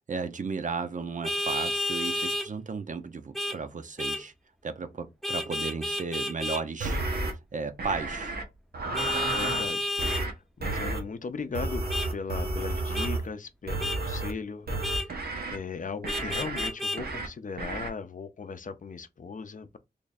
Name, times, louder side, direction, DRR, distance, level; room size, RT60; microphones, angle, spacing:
voice 1, 0.1-4.3 4.6-8.3, right 4 dB, 55° right, 0.6 m, -35 dB
Vehicle horn car horn honking, 1.2-2.5 3.3-3.6 4.0-4.2 5.2-6.6 8.9-10.2 11.9-12.1 12.9-13.1 13.8-14.0 14.8-15.1 16.1-17.0, left 1 dB, ahead, 0.5 m, -31 dB
sound 1, 6.8-7.3 7.8-8.4 8.7-9.7 10.0-10.3 10.6-11.0 11.6-13.3 13.7-14.3 14.7-15.6 16.0-16.7 17.0-17.3 17.6-17.9, right 2 dB, 90° right, 0.9 m, -31 dB
voice 2, 9.3-11.8 12.1-14.8 15.5-19.8, left 5 dB, 55° left, 0.5 m, -38 dB
3.3 x 2.4 x 4.0 m
wide cardioid pair, 100°, 16 cm